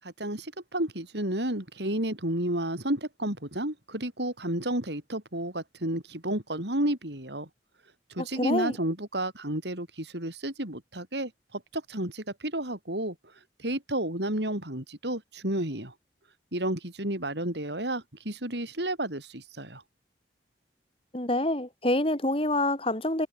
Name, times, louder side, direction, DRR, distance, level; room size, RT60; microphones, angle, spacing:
voice 1, 0.0-7.5 8.1-13.1 13.6-15.9 16.5-19.8, right 1 dB, 70° right, 6.6 m, -31 dB
voice 2, 8.2-8.8 21.1-23.3, left 1 dB, 30° left, 3.9 m, -27 dB
head